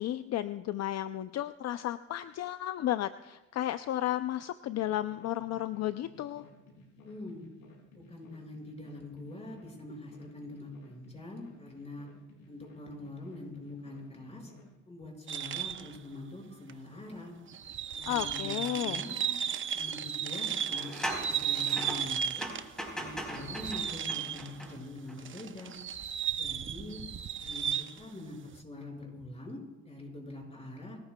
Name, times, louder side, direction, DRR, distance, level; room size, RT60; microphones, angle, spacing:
voice 1, 0.0-6.5 18.1-19.0, left 13 dB, 60° left, 12 dB, 0.5 m, -33 dB
sound 1, 4.9-14.7, left 2 dB, 90° left, 6.1 m, -56 dB
voice 2, 7.0-7.4 7.8-12.1 12.5-14.5 14.9-17.3 18.0-19.3 19.7-22.5 22.9-25.7 26.3-27.0 27.4-31.0, left 2 dB, 20° left, 0 dB, 5.6 m, -44 dB
sound 2, 15.3-16.0 16.7-16.8 17.5-22.8 23.1-24.7 25.2-28.0, right 8 dB, 40° right, 0.7 m, -34 dB
sound 3, 18.6-18.8 19.2-19.3 20.6-25.2 25.6-25.7, equal, ahead, 3.9 m, -40 dB
28.5 x 14.0 x 2.3 m, 1.1 s
cardioid pair, 90°, 30 cm